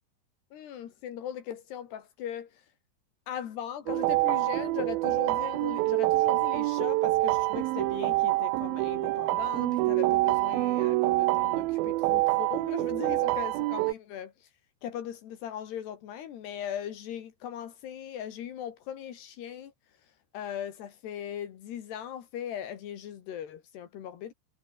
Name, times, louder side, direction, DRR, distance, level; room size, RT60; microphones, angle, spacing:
voice 1, 0.5-2.6 3.3-14.5 14.8-19.7 20.3-24.3, left 9 dB, 70° left, 4.1 m, -39 dB
sound 1, 3.9-13.9, right 19 dB, 85° right, 2.1 m, -26 dB
omnidirectional pair, 5.0 m